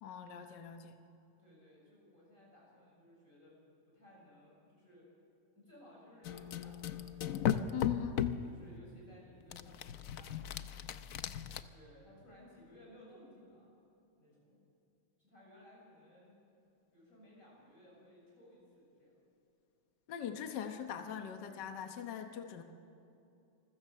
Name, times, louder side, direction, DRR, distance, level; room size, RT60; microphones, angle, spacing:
voice 1, 0.0-0.9 7.7-8.2 20.1-22.6, left 8 dB, 60° left, 6 dB, 1.6 m, -42 dB
voice 2, 1.4-3.6 3.9-5.1 5.6-7.4 8.0-10.7 11.5-13.7 14.2-14.6 15.2-16.4 16.9-19.1, left 1 dB, 35° left, -4 dB, 7.8 m, -59 dB
sound 1, 6.2-8.5 9.5-11.6, left 9 dB, 90° left, 0.7 m, -36 dB
26.5 x 15.5 x 6.8 m, 2.7 s
omnidirectional pair, 2.4 m